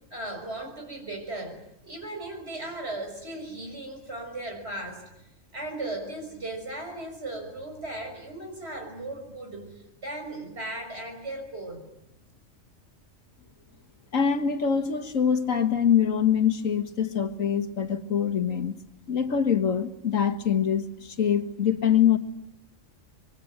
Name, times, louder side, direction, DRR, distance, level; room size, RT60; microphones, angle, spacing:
voice 1, 0.1-5.0 5.5-11.9, right 2 dB, 55° right, 4 dB, 6.0 m, -37 dB
voice 2, 14.1-18.8 19.1-22.2, left 8 dB, 90° left, 8 dB, 2.0 m, -24 dB
26.0 x 23.0 x 9.2 m, 0.84 s
omnidirectional pair, 1.3 m